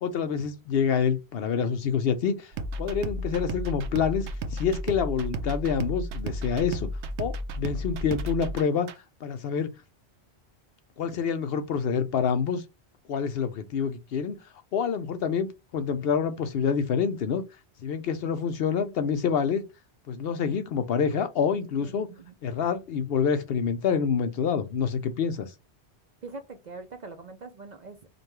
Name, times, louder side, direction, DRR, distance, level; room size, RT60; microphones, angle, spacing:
voice 1, 0.0-2.5 2.8-6.9 7.2-8.9 9.2-9.7 11.0-12.6 13.1-14.4 14.7-15.5 15.7-17.4 17.8-19.6 20.1-22.1 22.4-25.5, left 6 dB, 65° left, 0.8 m, -27 dB
sound 1, 2.5-9.0, right 1 dB, 85° right, 0.9 m, -33 dB
voice 2, 21.8-22.4 26.2-28.1, right 3 dB, 50° right, 0.6 m, -43 dB
5.1 x 2.2 x 3.0 m
omnidirectional pair, 1.2 m